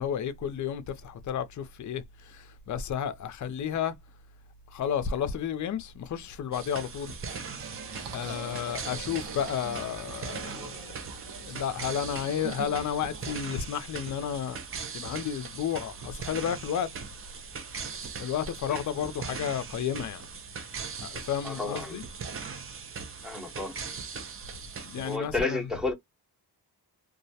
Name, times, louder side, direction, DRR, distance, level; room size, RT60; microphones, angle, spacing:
voice 1, 0.0-3.9 4.7-7.1 8.1-11.1 11.4-14.6 14.9-16.9 18.2-20.2 21.0-22.0 24.8-25.6, left 8 dB, 45° left, 0.5 m, -32 dB
sound 1, 6.5-25.2, right 5 dB, 35° right, 0.5 m, -40 dB
Singing, 7.6-13.4, right 5 dB, 75° right, 0.8 m, -43 dB
voice 2, 21.4-22.0 23.2-23.7 25.0-25.9, left 3 dB, ahead, 0.8 m, -31 dB
2.3 x 2.0 x 2.6 m
cardioid pair, 110°, 41 cm